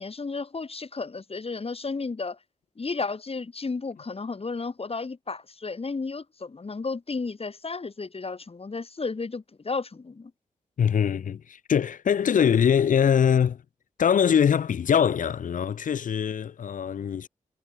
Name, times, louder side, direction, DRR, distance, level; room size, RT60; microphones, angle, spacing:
voice 1, 0.0-2.4 2.8-10.3, left 4 dB, 45° left, 4.3 m, -33 dB
voice 2, 10.8-13.6 14.0-17.3, left 8 dB, 80° left, 1.8 m, -23 dB
cardioid pair, 50°, 13 cm